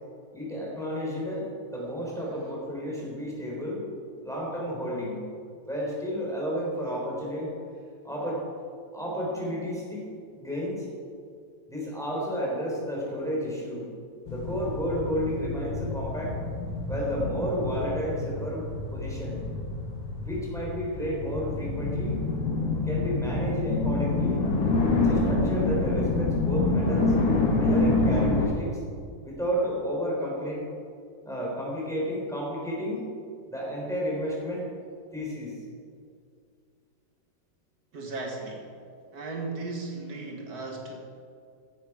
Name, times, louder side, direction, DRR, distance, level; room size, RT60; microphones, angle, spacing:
voice 1, 0.3-3.9 4.2-5.3 5.7-7.5 8.0-8.4 8.9-10.1 10.4-10.9 11.7-13.9 14.3-16.3 16.9-18.7 18.9-19.5 20.3-22.2 22.8-24.5 24.9-27.1 27.5-28.7 29.2-30.7 31.3-33.1 33.5-34.7 35.1-35.6, equal, ahead, -4 dB, 3.7 m, -31 dB
sound 1, 14.3-28.5, left 3 dB, 65° left, 2.1 m, -27 dB
voice 2, 37.9-38.7 39.1-41.0, right 3 dB, 70° right, 1 dB, 1.9 m, -36 dB
14.5 x 11.0 x 4.9 m, 2.3 s
omnidirectional pair, 1.7 m